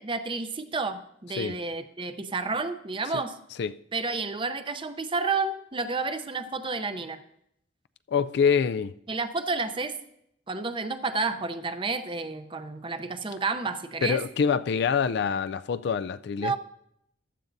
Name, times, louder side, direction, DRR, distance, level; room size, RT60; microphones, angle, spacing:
voice 1, 0.0-3.4 3.9-7.2 9.1-10.0 10.5-14.2 16.4-16.6, right 4 dB, 25° right, 0.6 m, -30 dB
voice 2, 8.1-9.0 14.0-16.6, left 6 dB, 60° left, 0.4 m, -25 dB
15.0 x 12.0 x 2.7 m
head